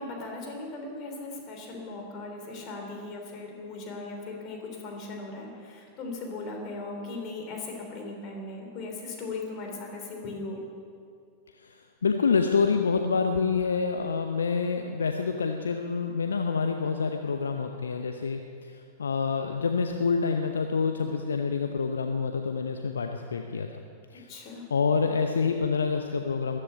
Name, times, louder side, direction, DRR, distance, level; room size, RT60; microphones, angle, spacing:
voice 1, 0.0-10.6 24.3-24.7, left 3 dB, 40° left, 2 dB, 3.4 m, -38 dB
voice 2, 11.6-23.7 24.1-24.3 24.7-26.6, left 5 dB, 70° left, 5 dB, 0.8 m, -27 dB
14.0 x 11.0 x 8.9 m, 2.4 s
figure-of-eight pair, 90°, 0 cm